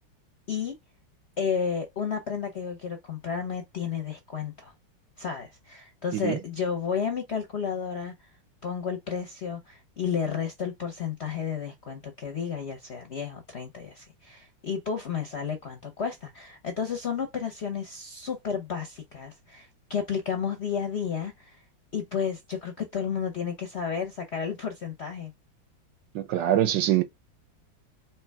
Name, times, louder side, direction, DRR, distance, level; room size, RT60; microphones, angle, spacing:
voice 1, 1.4-4.7 5.2-8.1 8.6-21.6 21.9-25.3, left 6 dB, 60° left, 0.7 m, -32 dB
voice 2, 26.1-27.0, right 12 dB, 75° right, 1.3 m, -24 dB
4.5 x 2.8 x 3.4 m
omnidirectional pair, 2.0 m